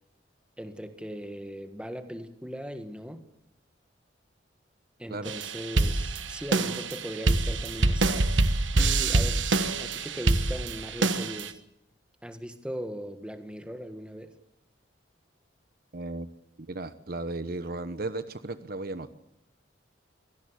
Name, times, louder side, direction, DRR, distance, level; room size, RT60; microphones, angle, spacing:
voice 1, 0.6-3.3 5.0-8.3 8.7-9.5 9.8-11.6 12.2-14.4, equal, 5° right, 8 dB, 1.6 m, -39 dB
sound 1, 5.3-11.5, right 2 dB, 90° right, 1.4 m, -26 dB
voice 2, 15.9-16.3 16.6-19.1, right 2 dB, 55° right, 12 dB, 1.0 m, -35 dB
24.5 x 17.0 x 8.3 m, 0.78 s
head